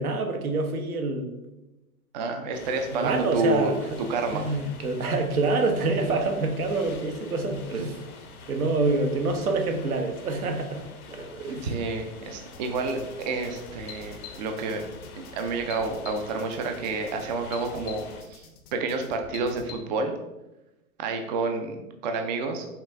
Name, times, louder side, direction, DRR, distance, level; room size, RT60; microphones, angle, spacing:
voice 1, 0.0-1.4 2.9-3.8 4.3-8.0 8.5-10.8 11.1-11.7, right 3 dB, 80° right, 4 dB, 0.9 m, -26 dB
voice 2, 2.1-3.7 4.1-4.5 11.6-14.8 15.2-18.4 18.7-20.1 21.0-22.7, right 3 dB, 35° right, 5 dB, 0.4 m, -29 dB
sound 1, 2.5-18.2, left 4 dB, 80° left, 0.9 m, -46 dB
sound 2, 12.5-19.8, left 7 dB, 25° left, 0.5 m, -45 dB
5.7 x 2.4 x 3.4 m, 0.98 s
hypercardioid pair, 120°, 43 cm